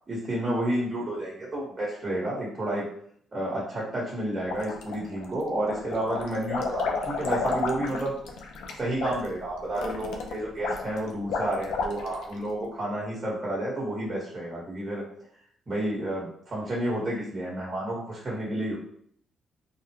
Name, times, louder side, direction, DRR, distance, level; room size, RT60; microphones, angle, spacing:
voice 1, 0.1-2.9 3.3-8.1 8.8-15.0 15.7-18.8, right 1 dB, 30° right, -4 dB, 1.3 m, -30 dB
sound 1, 4.4-5.2 5.6-12.3, left 4 dB, 85° left, 0.5 m, -32 dB
3.7 x 2.1 x 2.9 m, 0.63 s
cardioid pair, 90°, 0 cm